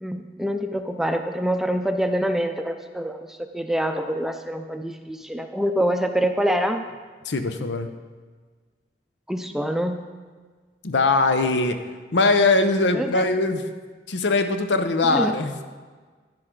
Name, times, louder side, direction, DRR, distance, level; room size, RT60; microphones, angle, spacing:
voice 1, 0.0-6.8 9.3-10.1 12.9-13.2 15.0-15.3, equal, ahead, 6 dB, 0.5 m, -25 dB
voice 2, 7.2-7.9 10.8-11.8 12.1-13.6 14.1-15.6, left 3 dB, 90° left, 8 dB, 0.8 m, -21 dB
10.5 x 10.5 x 3.8 m, 1.5 s
head